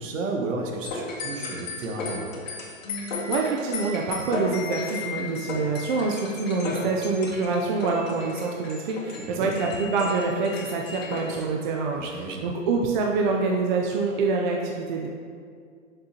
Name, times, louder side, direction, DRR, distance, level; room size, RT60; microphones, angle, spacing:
voice 1, 0.0-2.4 9.2-9.5 11.9-12.4, right 3 dB, 70° right, 1 dB, 1.6 m, -32 dB
sound 1, 0.8-11.4, left 3 dB, 70° left, 2.2 m, -34 dB
voice 2, 3.3-15.1, right 4 dB, 35° right, 0 dB, 0.6 m, -26 dB
10.5 x 6.9 x 3.0 m, 2.2 s
hypercardioid pair, 150°, 40 cm